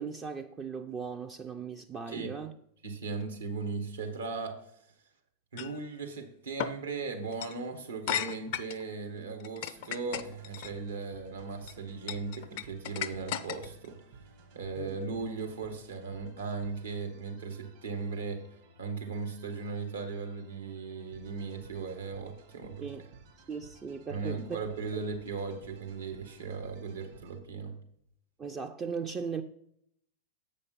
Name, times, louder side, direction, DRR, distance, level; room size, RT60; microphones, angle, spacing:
voice 1, 0.0-2.5 14.8-15.0 22.8-23.0 23.5-24.6 28.4-29.4, right 5 dB, 20° right, 0.5 m, -38 dB
voice 2, 2.8-4.6 5.5-14.0 14.5-18.4 18.8-22.9 24.1-27.8, right 4 dB, 70° right, 1.4 m, -37 dB
sound 1, 5.6-5.8 6.6-6.8 7.3-7.6 8.1-8.8 9.4-10.7 11.4-11.7 12.1-13.9, left 10 dB, 50° left, 0.4 m, -35 dB
sound 2, 9.7-27.4, right 5 dB, 50° right, 1.6 m, -56 dB
8.0 x 5.3 x 5.3 m
figure-of-eight pair, 90°, 0 cm